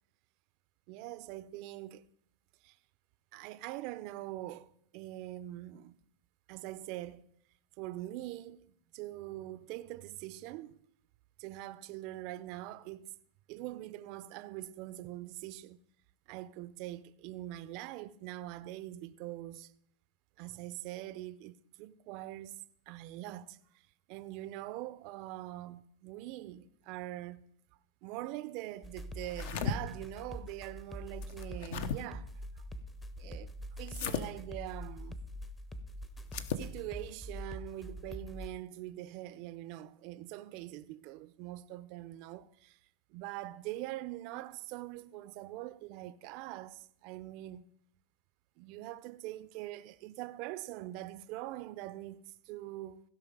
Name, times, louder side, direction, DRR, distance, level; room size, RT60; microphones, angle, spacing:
voice 1, 0.9-2.0 2.6-2.8 3.3-6.0 6.5-7.3 7.8-8.7 8.9-10.8 11.4-13.1 13.5-15.8 16.3-19.7 20.4-23.6 24.1-27.4 28.0-32.3 32.6-32.7 33.2-33.5 33.8-35.2 36.6-42.8 43.1-47.7 48.6-53.0, right 15 dB, 50° right, 0.4 m, -43 dB
sound 1, 28.8-38.5, equal, 10° left, 0.7 m, -44 dB
sound 2, 29.2-29.8 31.2-32.0 33.9-34.2 36.2-36.7, left 6 dB, 65° left, 0.8 m, -36 dB
16.0 x 5.4 x 5.2 m
supercardioid pair, 135°, 0 cm